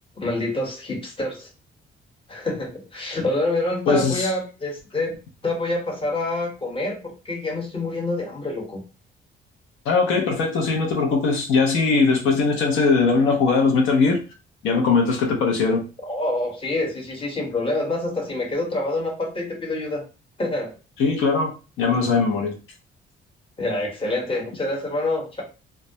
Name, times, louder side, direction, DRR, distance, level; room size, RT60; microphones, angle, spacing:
voice 1, 0.2-1.5 2.3-5.2 5.4-8.8 16.0-20.0 20.4-20.8 23.6-25.4, left 2 dB, 25° left, 0 dB, 0.9 m, -26 dB
voice 2, 3.9-4.3 9.9-14.2 14.6-15.8 21.0-22.5, left 4 dB, 85° left, 2 dB, 0.6 m, -20 dB
2.2 x 2.0 x 2.7 m, 0.32 s
cardioid pair, 90°, 20 cm